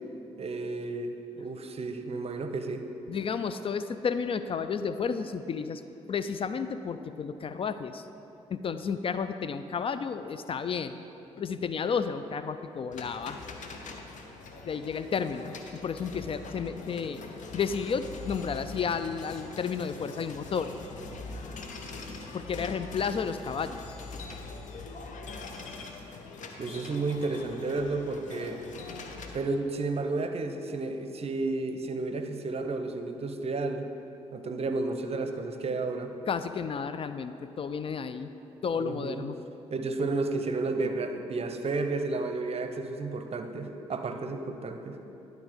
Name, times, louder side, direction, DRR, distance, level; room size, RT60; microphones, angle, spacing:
voice 1, 0.4-2.8 26.6-28.6 29.3-33.9 34.3-36.1 38.8-39.2 39.7-45.0, right 3 dB, 45° right, 7 dB, 0.7 m, -32 dB
voice 2, 3.1-5.8 6.1-8.1 8.5-11.0 11.4-13.4 14.6-17.2 17.5-20.7 22.3-24.0 36.3-38.3 38.6-39.4, left 6 dB, 40° left, 11 dB, 0.4 m, -32 dB
sound 1, 12.9-29.4, left 3 dB, 55° left, 0.8 m, -43 dB
11.0 x 4.0 x 5.1 m, 2.9 s
hypercardioid pair, 45°, 15 cm